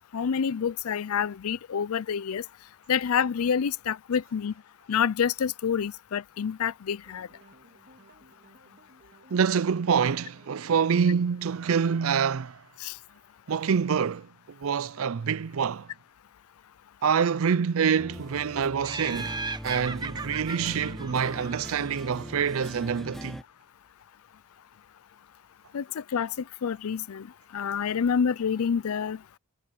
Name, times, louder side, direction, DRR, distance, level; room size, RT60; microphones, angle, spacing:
voice 1, 0.1-2.4 2.9-4.5 4.9-7.3 12.8-12.9 25.7-26.3 26.6-27.3 27.5-29.2, left 7 dB, 85° left, 0.5 m, -27 dB
sound 1, 7.0-12.0, right 2 dB, 50° right, 3.1 m, -58 dB
voice 2, 9.3-12.6 13.5-15.9 17.0-23.4, right 6 dB, 70° right, 0.5 m, -26 dB
sound 2, 18.0-23.4, equal, ahead, 0.3 m, -41 dB
Laughter, 18.8-22.1, right 4 dB, 20° right, 1.0 m, -37 dB
head